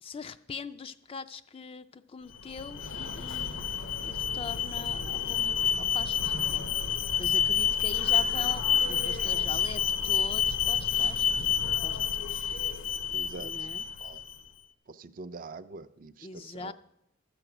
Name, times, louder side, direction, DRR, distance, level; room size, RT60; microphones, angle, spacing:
voice 1, 0.0-3.6 4.0-6.7 7.2-12.3 13.3-13.8 16.2-16.7, left 4 dB, 25° left, 10 dB, 0.3 m, -42 dB
Alarm, 2.3-14.4, left 8 dB, 70° left, 0.8 m, -29 dB
voice 2, 13.1-13.5 14.0-14.2 14.9-16.7, right 3 dB, 40° right, 11 dB, 0.4 m, -44 dB
13.0 x 7.8 x 6.0 m, 0.82 s
head